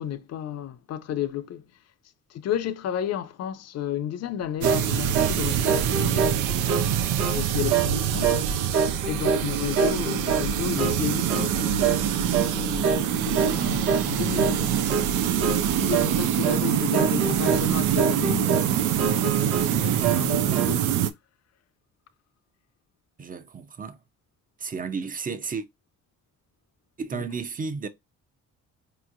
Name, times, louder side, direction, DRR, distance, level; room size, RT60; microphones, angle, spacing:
voice 1, 0.0-1.6 2.3-6.3 7.3-8.4 8.7-14.8 15.5-20.9 27.1-27.2, left 10 dB, 55° left, 0.5 m, -33 dB
sound 1, 4.6-4.9 5.1-5.4 5.6-6.9 7.2-7.4 7.7-7.9 8.2-8.5 8.7-9.5 9.7-10.5 10.8-11.0 11.3-11.5 11.8-12.0 12.3-12.5 12.8-13.1 13.3-13.6 13.9-14.1 14.4-14.6 14.9-15.1 15.4-15.7 15.9-16.1 16.4-16.6 16.9-17.7 18.0-18.7 19.0-19.7 20.0-20.7, right 5 dB, 55° right, 1.1 m, -26 dB
sound 2, 4.6-21.1, right 9 dB, 90° right, 0.5 m, -25 dB
voice 2, 23.2-24.0 24.6-25.7 27.0-27.9, right 5 dB, 30° right, 0.6 m, -33 dB
4.4 x 2.9 x 2.4 m
cardioid pair, 90°, 30 cm